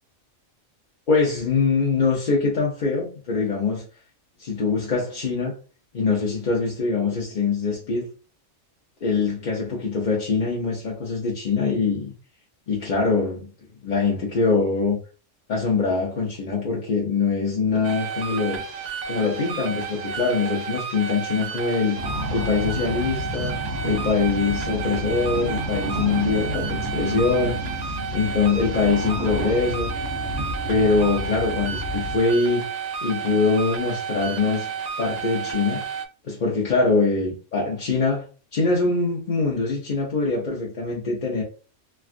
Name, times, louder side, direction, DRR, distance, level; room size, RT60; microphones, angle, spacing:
voice 1, 1.1-3.8 4.4-5.5 5.9-8.1 9.0-12.1 12.7-13.5 13.8-15.0 15.5-18.6 19.1-22.0 22.3-27.6 28.1-29.9 30.7-32.7 33.0-34.7 35.0-35.8 36.2-38.2 38.5-41.4, left 4 dB, 45° left, 0.7 m, -23 dB
sound 1, 17.8-36.1, right 6 dB, 75° right, 0.3 m, -32 dB
sound 2, 22.0-32.2, equal, 55° right, 0.9 m, -30 dB
3.2 x 2.3 x 2.4 m
omnidirectional pair, 1.3 m